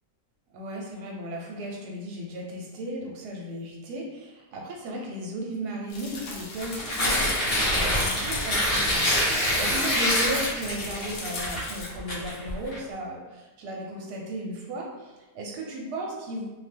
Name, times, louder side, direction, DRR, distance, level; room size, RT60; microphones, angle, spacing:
voice 1, 0.5-16.4, right 1 dB, 75° right, -1 dB, 1.1 m, -35 dB
sound 1, 5.9-11.9, left 4 dB, 80° left, 1.2 m, -37 dB
Tearing, 6.5-12.8, left 1 dB, 45° left, 1.0 m, -26 dB
2.9 x 2.1 x 3.3 m, 1.1 s
omnidirectional pair, 1.8 m